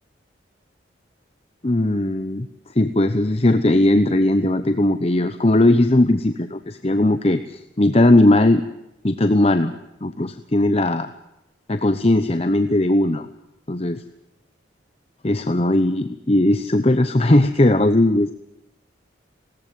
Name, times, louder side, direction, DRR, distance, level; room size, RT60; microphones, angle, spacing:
voice 1, 1.6-2.5 2.7-8.6 9.0-9.7 10.0-11.1 11.7-13.3 13.7-14.0 15.2-18.3, left 1 dB, 30° left, 9 dB, 0.9 m, -18 dB
20.5 x 18.0 x 9.4 m, 0.88 s
head